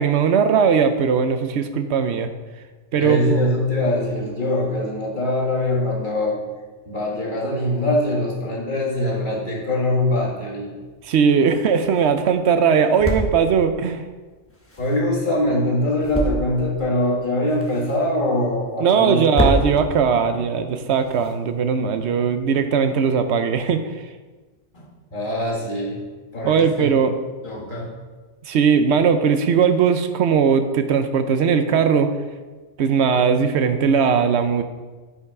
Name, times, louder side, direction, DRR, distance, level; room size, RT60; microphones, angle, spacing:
voice 1, 0.0-2.3 2.9-3.4 11.0-14.0 18.8-23.8 26.4-27.1 28.5-32.1 32.8-34.6, right 6 dB, 65° right, 9 dB, 0.9 m, -19 dB
voice 2, 3.0-6.4 6.9-10.7 14.8-19.8 24.7-26.0 26.3-26.9 27.4-27.9, left 1 dB, 40° left, -4 dB, 1.9 m, -23 dB
sound 1, 10.8-22.0, equal, 10° left, 1.2 m, -30 dB
8.5 x 5.6 x 4.8 m, 1.3 s
omnidirectional pair, 1.3 m